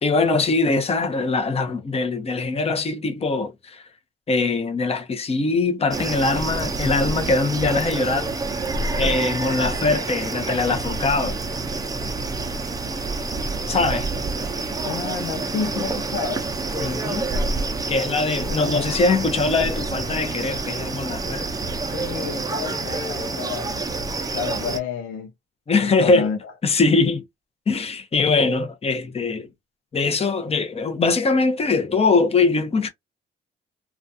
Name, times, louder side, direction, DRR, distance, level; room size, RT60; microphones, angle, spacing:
voice 1, 0.0-3.8 4.3-8.3 9.0-11.4 13.7-14.1 16.8-17.3 17.9-21.5 25.7-26.3 26.6-27.2 27.7-29.5 29.9-32.9, left 3 dB, 30° left, 0.7 m, -22 dB
sound 1, 5.9-24.8, right 3 dB, 20° right, 0.5 m, -28 dB
voice 2, 14.8-16.4 18.2-19.0 21.9-23.8 24.3-25.3 25.8-26.5, left 7 dB, 85° left, 0.7 m, -30 dB
2.4 x 2.3 x 2.6 m
cardioid pair, 90°, 20 cm